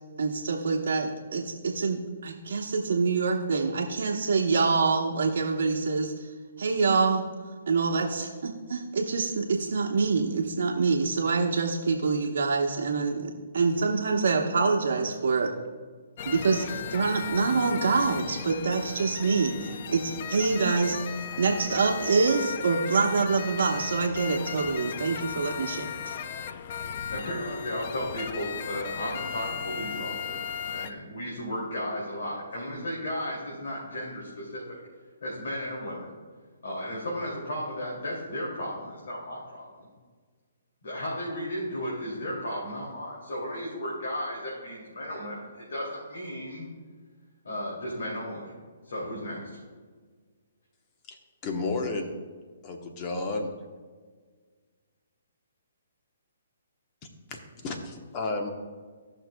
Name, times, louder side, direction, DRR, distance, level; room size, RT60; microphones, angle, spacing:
voice 1, 0.2-6.3 6.6-7.2 7.7-15.5 16.2-26.2, right 4 dB, 75° right, -3 dB, 1.0 m, -26 dB
sound 1, 16.2-30.9, left 8 dB, 50° left, 0.5 m, -36 dB
voice 2, 26.9-34.8 35.2-36.1 36.6-39.9 40.8-46.7 47.4-48.5 48.8-49.6, equal, 75° left, -5 dB, 2.6 m, -34 dB
voice 3, 51.4-52.1 52.6-53.5 57.3-58.5, left 3 dB, 30° left, 4 dB, 1.0 m, -32 dB
17.0 x 6.2 x 2.3 m, 1.5 s
hypercardioid pair, 145°, 0 cm